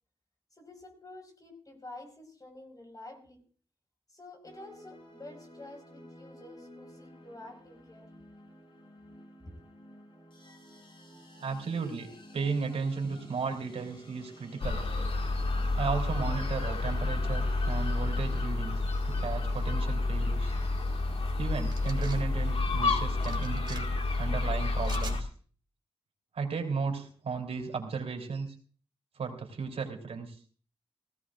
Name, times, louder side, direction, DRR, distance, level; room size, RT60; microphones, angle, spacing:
voice 1, 0.6-3.4 4.1-8.1 9.4-9.6, left 2 dB, 35° left, 4 dB, 5.2 m, -49 dB
sound 1, 4.4-18.5, equal, 55° left, 6.0 m, -53 dB
voice 2, 11.4-12.1 12.3-14.8 15.8-20.5 21.4-25.3 26.3-28.5 29.2-30.4, right 5 dB, 85° right, 2 dB, 3.6 m, -35 dB
sound 2, 14.6-25.2, left 2 dB, 70° left, 2.0 m, -29 dB
sound 3, 21.7-22.2 23.2-23.8 24.8-25.2, right 4 dB, 45° right, 2.5 m, -44 dB
18.5 x 16.5 x 2.5 m, 0.42 s
cardioid pair, 75°, 10 cm